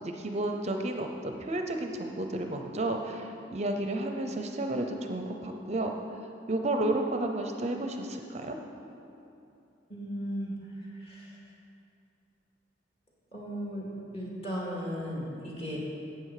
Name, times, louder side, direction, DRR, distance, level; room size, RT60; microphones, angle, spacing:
voice 1, 0.0-5.9 6.5-8.6, right 1 dB, 35° right, 4 dB, 0.6 m, -32 dB
voice 2, 9.9-10.5 10.8-11.4 13.3-13.9 14.1-15.8, equal, 35° left, -5 dB, 2.4 m, -36 dB
12.5 x 8.3 x 4.9 m, 2.8 s
head